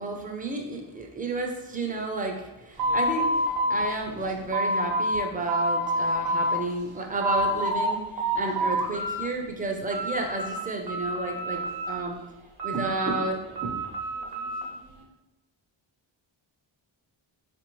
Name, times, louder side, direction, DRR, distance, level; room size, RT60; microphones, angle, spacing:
voice 1, 0.0-3.3 3.7-12.2 12.6-13.8, right 3 dB, 20° right, 2 dB, 0.4 m, -31 dB
sound 1, 2.8-5.2 5.5-6.6 7.0-7.9 8.2-9.3 9.6-10.6 10.9-12.1 12.6-14.7, equal, 50° right, 0.7 m, -28 dB
3.8 x 2.5 x 3.0 m, 1.0 s
wide cardioid pair, 110°, 48 cm